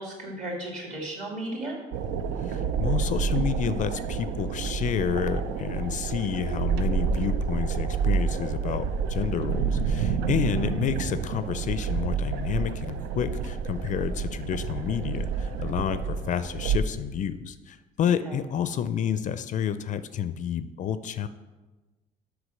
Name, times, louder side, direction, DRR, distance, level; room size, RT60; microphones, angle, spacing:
voice 1, 0.0-1.8 10.4-10.7 18.2-18.3, right 1 dB, 45° right, -1 dB, 2.5 m, -35 dB
sound 1, 1.9-16.8, right 6 dB, 85° right, 0.5 m, -29 dB
voice 2, 2.4-21.3, left 8 dB, 50° left, 13 dB, 0.4 m, -30 dB
6.4 x 4.9 x 6.2 m, 1.2 s
cardioid pair, 110°, 17 cm